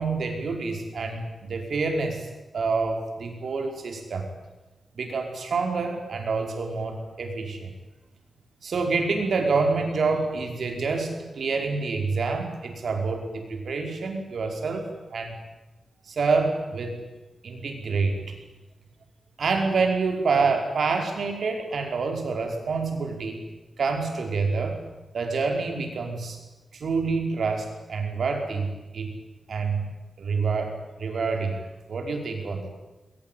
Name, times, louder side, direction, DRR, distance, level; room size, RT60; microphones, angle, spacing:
voice 1, 0.0-2.3 2.5-4.3 5.0-7.7 8.6-15.3 16.1-17.0 17.4-18.2 19.4-23.4 23.8-24.8 25.1-26.4 26.7-29.1 29.5-29.8 30.2-31.6 31.9-32.7, right 4 dB, 75° right, 4 dB, 5.1 m, -27 dB
22.0 x 21.5 x 9.4 m, 1.1 s
wide cardioid pair, 125°, 0 cm